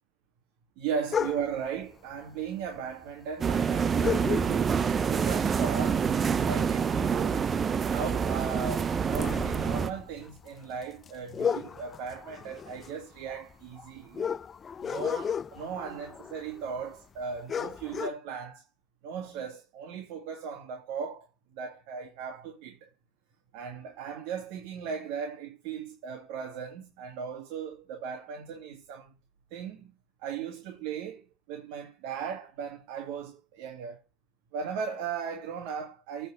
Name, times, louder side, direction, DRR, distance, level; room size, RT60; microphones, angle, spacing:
voice 1, 0.8-6.1 6.4-7.5 7.8-14.3 14.8-18.7 19.0-21.3 21.5-22.9 23.5-29.1 29.5-34.0 34.5-36.3, right 6 dB, 70° right, 2.1 m, -37 dB
sound 1, 1.1-1.7 2.7-2.8 3.0-3.1 4.0-4.9 5.3-5.6 5.9-7.5 7.9-8.1 8.5-16.9 17.2-17.3 17.5-18.1, left 7 dB, 25° left, 0.4 m, -34 dB
sound 2, 3.4-9.9, right 6 dB, 25° right, 0.6 m, -27 dB
9.0 x 4.5 x 6.4 m
supercardioid pair, 135°, 0 cm